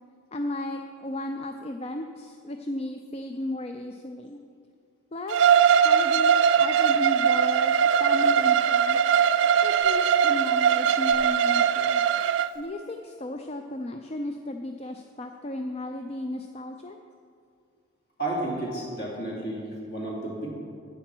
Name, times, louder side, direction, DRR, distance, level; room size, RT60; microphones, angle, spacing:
voice 1, 0.3-4.4 5.1-9.0 9.6-12.0 12.5-17.0, left 1 dB, 30° left, 5 dB, 0.4 m, -35 dB
Bowed string instrument, 5.3-12.5, right 8 dB, 60° right, 0.3 m, -21 dB
voice 2, 18.2-20.5, right 1 dB, 50° left, -3 dB, 2.9 m, -32 dB
10.0 x 9.2 x 6.0 m, 2.4 s
head